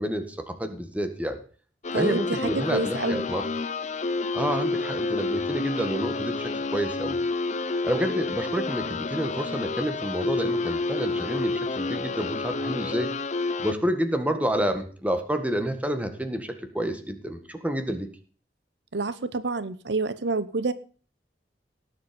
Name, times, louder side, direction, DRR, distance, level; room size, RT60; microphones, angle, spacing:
voice 1, 0.0-1.4 2.0-3.5 4.3-7.2 7.8-13.1 13.6-18.1, equal, 10° right, 7 dB, 1.8 m, -29 dB
sound 1, 1.8-13.7, left 3 dB, 40° left, 0.8 m, -29 dB
voice 2, 1.9-3.2 18.9-20.7, right 3 dB, 80° right, 15 dB, 0.9 m, -28 dB
18.0 x 7.6 x 5.3 m, 0.40 s
head